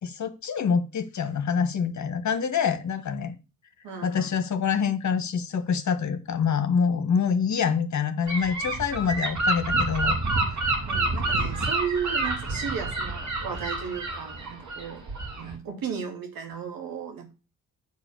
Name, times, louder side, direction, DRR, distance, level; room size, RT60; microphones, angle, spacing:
voice 1, 0.0-3.3 4.0-10.2 10.5-10.7, left 6 dB, 50° left, 1.5 m, -26 dB
voice 2, 3.8-4.3 10.9-15.1 15.4-17.3, right 7 dB, 65° right, 2.7 m, -34 dB
Gull seagull / Wind, 8.3-15.5, right 2 dB, 50° right, 3.1 m, -28 dB
8.0 x 4.8 x 7.4 m
hypercardioid pair, 45°, 37 cm